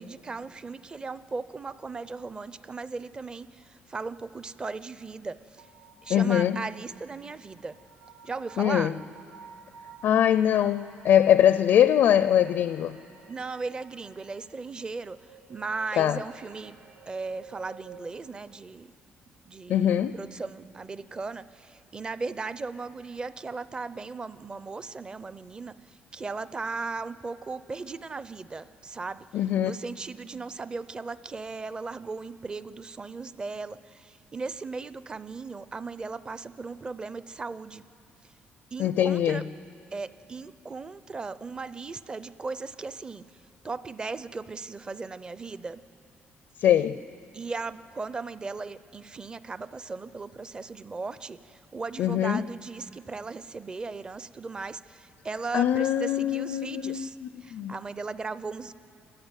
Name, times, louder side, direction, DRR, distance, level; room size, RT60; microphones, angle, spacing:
voice 1, 0.0-5.7 6.0-7.8 8.2-9.0 13.3-15.2 15.5-16.8 17.1-18.9 19.4-29.3 29.6-37.8 38.7-39.4 39.9-43.2 43.6-45.8 47.3-57.2 57.4-58.7, right 4 dB, 25° right, 15 dB, 0.5 m, -37 dB
sound 1, 5.6-18.1, right 6 dB, 85° right, 2.2 m, -53 dB
voice 2, 6.1-6.6 8.6-8.9 10.0-13.0 16.0-16.2 19.7-20.2 29.3-29.7 38.8-39.4 46.6-47.0 52.0-52.4 55.5-57.7, left 10 dB, 65° left, 13 dB, 0.5 m, -22 dB
27.5 x 14.5 x 9.0 m, 2.6 s
cardioid pair, 135°, 4 cm